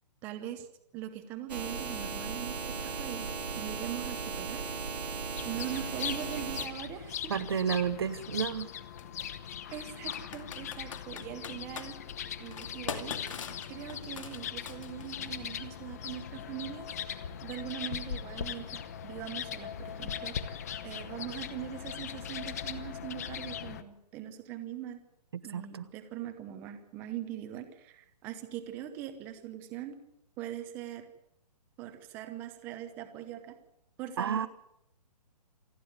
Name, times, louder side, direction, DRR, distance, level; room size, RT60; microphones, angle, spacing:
voice 1, 0.2-0.7 0.9-4.6 5.4-7.3 9.7-12.0 12.4-13.2 13.7-25.0 25.4-30.0 30.4-31.1 31.8-33.6 34.0-34.5, right 11 dB, 10° right, 7 dB, 0.9 m, -41 dB
sound 1, 1.5-6.7, right 5 dB, 75° right, 2.7 m, -37 dB
sound 2, 5.4-23.8, left 8 dB, 25° left, 0.9 m, -40 dB
Computer keyboard, 7.3-7.4 9.0-9.2 10.1-11.9 12.5-15.2, left 6 dB, 50° left, 2.4 m, -41 dB
voice 2, 7.3-8.7 25.3-25.9 34.2-34.5, right 7 dB, 40° right, 13 dB, 0.9 m, -31 dB
27.5 x 10.0 x 9.3 m, 0.78 s
hypercardioid pair, 175°, 21 cm